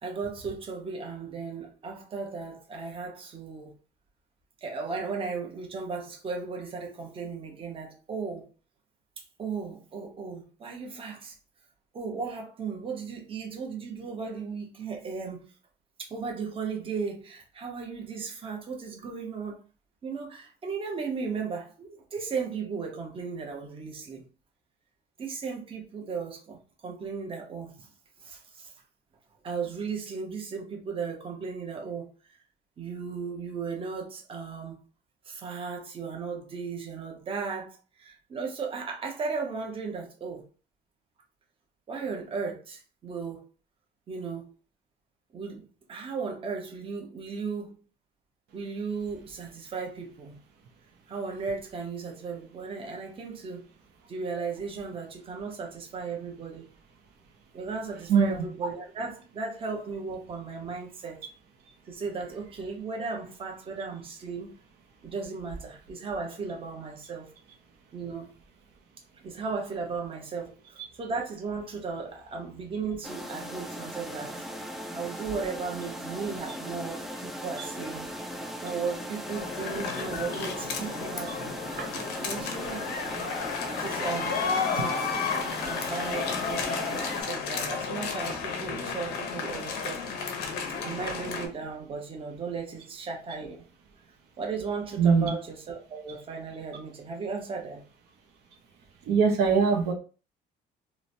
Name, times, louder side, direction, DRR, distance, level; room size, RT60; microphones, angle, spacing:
voice 1, 0.0-3.7 4.6-8.5 9.2-11.4 11.9-15.4 16.0-19.6 20.0-24.3 25.2-27.9 28.2-28.7 29.4-32.4 32.8-34.8 35.2-40.5 41.9-43.5 44.1-44.5 45.3-47.8 48.5-50.4 51.1-53.6 54.1-56.7 57.5-61.2 61.9-64.6 65.0-67.3 67.9-68.3 69.2-74.4 74.9-78.1 78.6-81.6 82.2-82.9 83.6-85.0 85.6-90.1 90.8-93.7 94.4-97.8, right 5 dB, 35° right, 0.7 m, -36 dB
sound 1, 73.0-87.2, equal, ahead, 0.3 m, -38 dB
sound 2, 79.3-91.5, left 5 dB, 80° left, 0.6 m, -32 dB
voice 2, 95.0-95.3 99.1-99.9, right 6 dB, 75° right, 0.6 m, -22 dB
2.9 x 2.1 x 2.6 m
cardioid pair, 110°, 17 cm